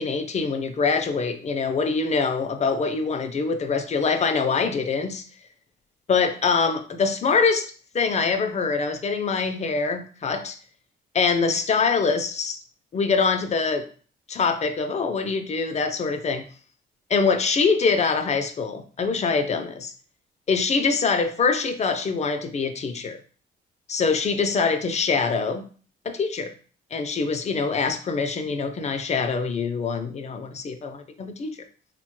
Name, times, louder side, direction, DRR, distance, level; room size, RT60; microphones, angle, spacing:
voice 1, 0.0-5.2 6.1-10.6 11.1-12.6 12.9-13.9 14.3-16.4 17.1-19.9 20.5-23.2 23.9-25.6 26.1-26.5 26.9-31.6, left 4 dB, 35° left, 8 dB, 0.4 m, -24 dB
3.3 x 2.1 x 3.0 m, 0.41 s
cardioid pair, 90°, 20 cm